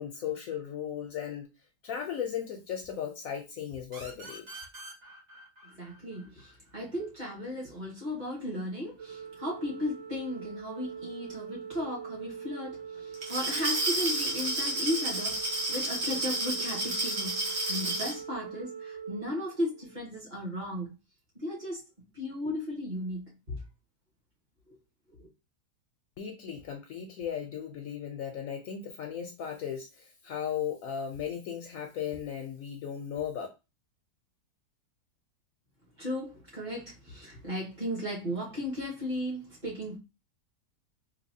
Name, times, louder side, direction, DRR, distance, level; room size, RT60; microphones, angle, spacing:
voice 1, 0.0-1.5 1.8-4.5 26.2-33.5, left 8 dB, 70° left, 0.9 m, -36 dB
sound 1, 3.9-7.3, right 2 dB, 45° right, 1.8 m, -47 dB
voice 2, 5.6-20.9 21.3-21.8 22.1-23.6 24.7-24.8 25.2-25.3 36.0-40.0, left 1 dB, 30° right, 1.6 m, -36 dB
Organ, 9.0-20.1, right 6 dB, 70° right, 0.6 m, -43 dB
Glass, 13.1-18.2, right 1 dB, 85° right, 1.7 m, -31 dB
3.9 x 2.8 x 2.7 m
omnidirectional pair, 1.7 m